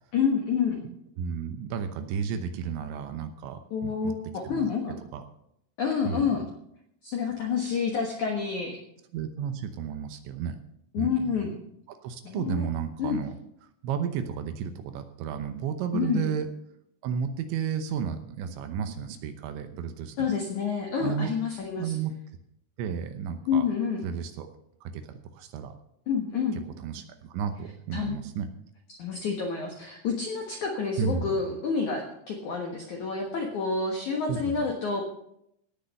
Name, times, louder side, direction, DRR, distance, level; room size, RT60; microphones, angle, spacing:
voice 1, 0.1-0.8 3.7-5.0 5.8-6.4 7.0-8.8 10.9-11.5 12.3-12.7 13.0-13.2 15.9-16.2 20.2-22.0 23.4-24.0 26.1-26.6 27.9-28.2 28.9-35.0, left 6 dB, 70° left, 1 dB, 1.8 m, -28 dB
voice 2, 0.8-3.6 4.0-4.1 4.4-4.7 5.1-5.2 6.0-6.4 9.1-10.6 11.0-11.6 11.9-13.3 13.8-16.5 17.0-20.3 21.0-21.3 21.8-22.1 22.8-23.7 24.0-24.5 24.8-25.7 26.5-28.5 31.0-31.4 34.3-34.6, right 7 dB, 75° right, 8 dB, 3.0 m, -33 dB
18.0 x 6.7 x 6.5 m, 0.76 s
omnidirectional pair, 5.8 m